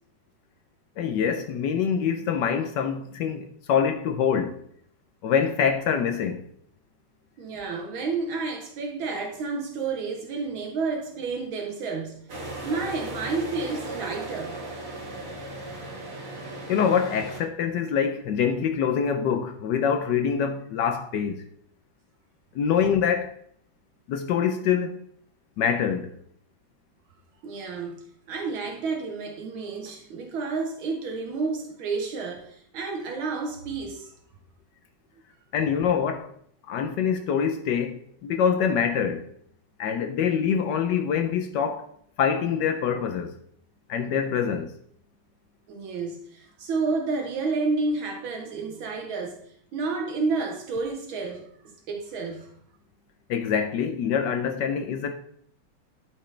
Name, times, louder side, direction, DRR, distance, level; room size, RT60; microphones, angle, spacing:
voice 1, 1.0-4.6 5.2-6.4 16.7-21.5 22.5-23.3 24.1-25.0 25.6-26.1 35.5-36.3 36.7-39.3 39.8-41.9 42.2-43.4 43.9-44.7 53.3-55.1, left 7 dB, 75° left, 1.0 m, -25 dB
voice 2, 7.4-12.3 12.6-14.6 27.4-34.1 45.7-49.4 49.7-52.5, right 4 dB, 70° right, 1.6 m, -30 dB
sound 1, 12.3-17.4, right 1 dB, 40° right, 1.8 m, -36 dB
11.5 x 5.0 x 3.2 m
omnidirectional pair, 2.4 m